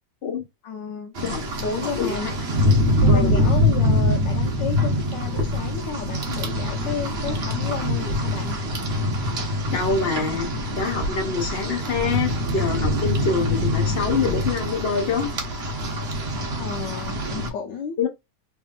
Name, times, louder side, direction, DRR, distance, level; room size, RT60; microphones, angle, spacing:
voice 1, 0.6-1.1 1.6-2.3 3.0-8.6 16.6-18.0, left 6 dB, 80° left, 1.3 m, -32 dB
Rain, 1.1-17.5, left 1 dB, 50° right, 0.8 m, -24 dB
voice 2, 1.8-2.3 3.1-3.5 9.7-15.3 18.0-18.1, left 5 dB, 60° left, 0.6 m, -25 dB
3.6 x 3.3 x 2.4 m
omnidirectional pair, 2.0 m